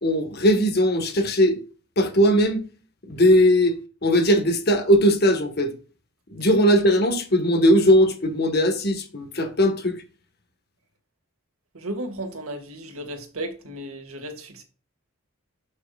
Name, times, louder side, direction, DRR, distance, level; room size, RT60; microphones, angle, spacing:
voice 1, 0.0-1.6 2.0-2.6 3.1-5.7 6.3-10.0, equal, 45° left, 1.6 m, -19 dB
voice 2, 11.7-14.6, right 1 dB, 90° right, 2.1 m, -34 dB
12.0 x 6.2 x 2.5 m
head